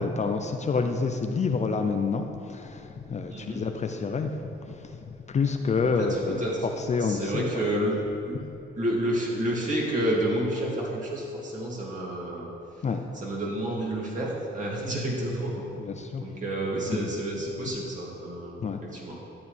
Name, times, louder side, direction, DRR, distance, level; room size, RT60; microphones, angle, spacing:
voice 1, 0.0-6.4 6.8-7.6 12.8-13.0 15.8-16.3 16.9-17.1 18.6-18.8, left 4 dB, 35° left, 5 dB, 0.6 m, -28 dB
voice 2, 3.3-3.6 6.0-6.6 7.0-8.0 8.2-8.3 8.8-12.5 13.1-15.6 16.2-19.2, right 1 dB, 40° right, -4 dB, 2.7 m, -30 dB
12.5 x 8.7 x 3.5 m, 2.7 s
cardioid pair, 90°, 20 cm